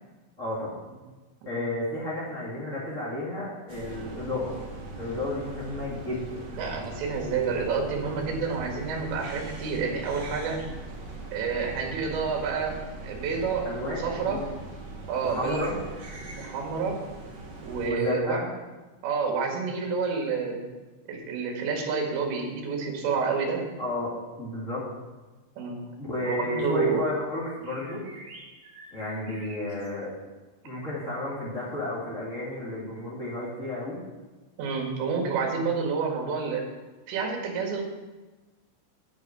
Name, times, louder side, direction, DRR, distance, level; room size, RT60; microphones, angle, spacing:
voice 1, 0.4-0.7 1.4-4.5 4.9-6.4 13.6-14.4 15.2-15.8 17.8-18.5 23.8-24.9 26.0-28.0 28.9-30.1 30.6-34.0, left 2 dB, 30° left, -7 dB, 1.3 m, -32 dB
sound 1, 3.7-17.9, right 2 dB, 45° right, 2.7 m, -40 dB
voice 2, 6.6-10.6 11.3-12.8 13.0-14.4 15.1-15.7 16.4-17.0 17.6-18.4 19.0-20.6 21.1-23.6 25.6-25.8 26.3-27.0 34.6-36.7 37.1-37.8, right 5 dB, 65° right, 0 dB, 3.9 m, -29 dB
sound 2, 27.4-29.9, right 2 dB, 25° right, 2.0 m, -48 dB
9.5 x 8.3 x 6.0 m, 1.2 s
omnidirectional pair, 6.0 m